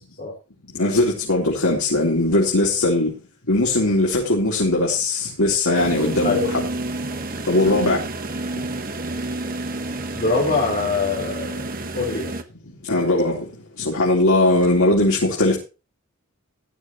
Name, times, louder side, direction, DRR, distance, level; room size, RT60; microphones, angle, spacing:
voice 1, 0.7-3.1 3.5-6.6 7.5-8.0 12.9-13.4 13.8-15.6, left 2 dB, 85° left, 3.8 m, -19 dB
sound 1, 5.7-12.4, right 2 dB, 40° right, 1.4 m, -29 dB
voice 2, 10.1-11.5 11.9-12.3, left 3 dB, 45° left, 4.4 m, -23 dB
16.0 x 11.0 x 3.1 m
head